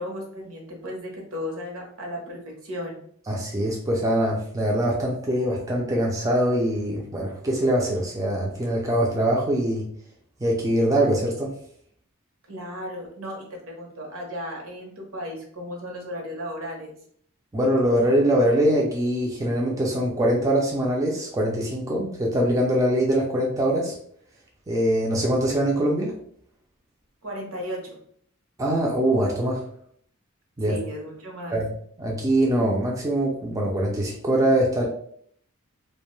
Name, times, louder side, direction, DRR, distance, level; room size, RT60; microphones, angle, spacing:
voice 1, 0.0-3.0 12.5-16.9 27.2-28.0 30.6-31.6, equal, 75° right, 0 dB, 0.8 m, -35 dB
voice 2, 3.3-9.9 10.4-11.5 17.5-24.0 24.7-26.1 28.6-29.6 30.6-30.8 31.5-31.7 32.0-34.8, right 1 dB, 15° right, -2 dB, 0.3 m, -23 dB
2.5 x 2.2 x 3.0 m, 0.63 s
head